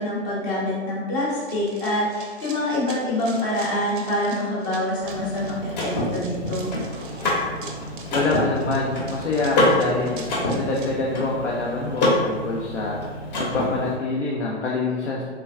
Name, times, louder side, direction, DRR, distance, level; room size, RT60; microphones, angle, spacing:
voice 1, 0.0-6.7, left 1 dB, 15° left, -6 dB, 0.4 m, -26 dB
Run, 1.4-10.9, right 5 dB, 50° right, 0.4 m, -44 dB
Car / Mechanisms, 5.0-14.0, left 1 dB, 40° left, 0.7 m, -26 dB
voice 2, 8.1-10.2 10.5-13.0 13.4-15.2, left 3 dB, 90° left, -3 dB, 0.5 m, -25 dB
3.2 x 2.2 x 2.3 m, 1.5 s
figure-of-eight pair, 115°, 34 cm